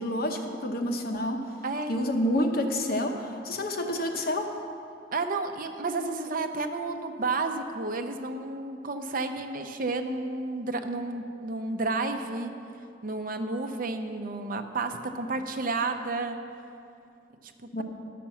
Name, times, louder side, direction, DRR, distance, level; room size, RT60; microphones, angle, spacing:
voice 1, 0.0-1.4 1.9-4.5 17.7-17.8, left 1 dB, 55° left, 4 dB, 1.0 m, -28 dB
voice 2, 1.6-2.0 5.1-12.5 13.0-16.4 17.6-17.8, right 3 dB, 50° right, 6 dB, 0.7 m, -31 dB
11.5 x 5.9 x 7.1 m, 2.5 s
head